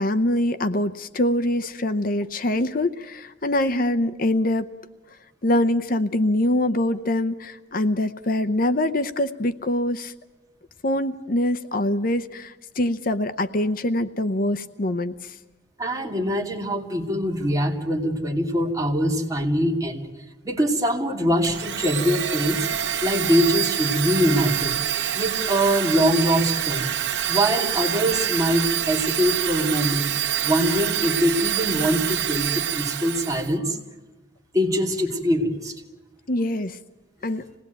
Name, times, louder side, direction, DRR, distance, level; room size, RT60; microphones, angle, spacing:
voice 1, 0.0-4.7 5.4-10.1 10.8-15.4 36.3-36.8 37.2-37.4, left 1 dB, 50° left, 12 dB, 0.8 m, -24 dB
voice 2, 15.8-20.1 20.4-22.7 23.0-24.8 25.1-26.9 27.3-30.1 30.4-33.8 34.5-35.7, equal, 20° right, 0 dB, 2.8 m, -23 dB
Domestic sounds home sounds, 21.4-33.5, right 11 dB, 90° right, 1.3 m, -26 dB
26.5 x 19.0 x 9.3 m, 1.1 s
head